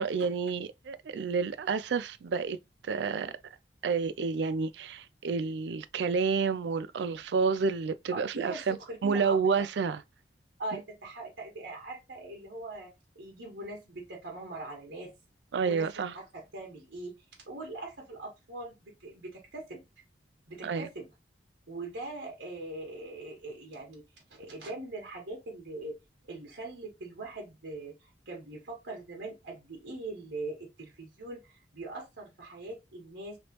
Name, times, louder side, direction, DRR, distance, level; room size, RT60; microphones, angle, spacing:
voice 1, 0.0-2.6 2.8-3.3 3.8-8.8 9.0-10.0 10.7-10.8 15.5-16.1 20.6-20.9, right 5 dB, 65° right, 0.4 m, -29 dB
voice 2, 8.1-9.4 10.6-15.1 15.6-19.8 20.5-21.1 21.7-24.0 24.3-25.9 26.3-33.4, right 2 dB, 90° right, 1.3 m, -41 dB
3.2 x 3.0 x 2.8 m
head